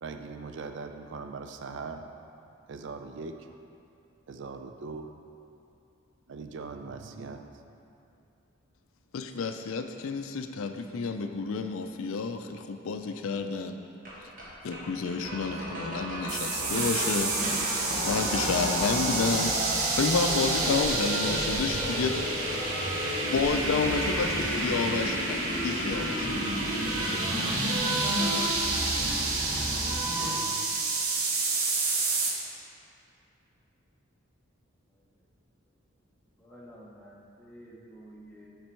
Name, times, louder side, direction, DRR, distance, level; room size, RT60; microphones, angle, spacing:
voice 1, 0.0-2.0 2.7-3.4 4.3-5.1 6.3-7.7, right 4 dB, 55° right, 6 dB, 0.4 m, -40 dB
voice 2, 9.1-13.8 14.6-19.7 19.9-22.7 23.2-26.3 27.9-28.3, left 4 dB, 70° left, 6 dB, 0.4 m, -30 dB
sound 1, 14.0-14.1 14.4-14.5 14.7-14.8 15.1-30.3, equal, 40° right, 1.5 m, -32 dB
sound 2, 16.3-32.3, right 3 dB, 85° right, 1.0 m, -30 dB
voice 3, 30.4-31.2 31.4-31.5 36.4-38.5, equal, 10° left, -5 dB, 0.8 m, -51 dB
7.4 x 5.2 x 4.5 m, 2.6 s
head